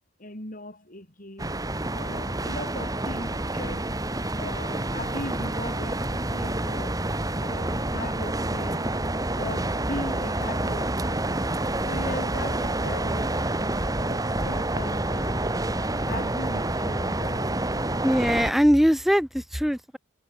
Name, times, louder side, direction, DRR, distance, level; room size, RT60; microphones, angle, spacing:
voice 1, 0.2-1.5 1.9-3.9 4.3-6.9 7.4-8.9 9.3-11.2 11.8-13.3 14.0-15.4 16.0-17.5, left 1 dB, 40° left, 5.4 m, -38 dB
sound 1, 1.4-18.5, right 1 dB, 15° right, 1.6 m, -28 dB
voice 2, 18.0-20.0, equal, ahead, 0.8 m, -21 dB
head